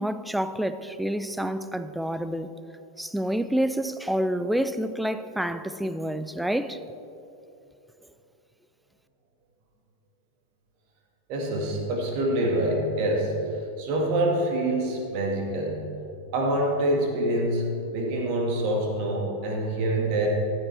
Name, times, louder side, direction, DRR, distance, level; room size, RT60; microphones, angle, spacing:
voice 1, 0.0-2.5 3.0-6.8, right 1 dB, 5° right, 0.4 m, -28 dB
voice 2, 11.3-13.4 13.8-15.8 16.3-20.3, right 1 dB, 45° right, 2.0 m, -26 dB
14.5 x 10.5 x 3.5 m
figure-of-eight pair, 90°, 0 cm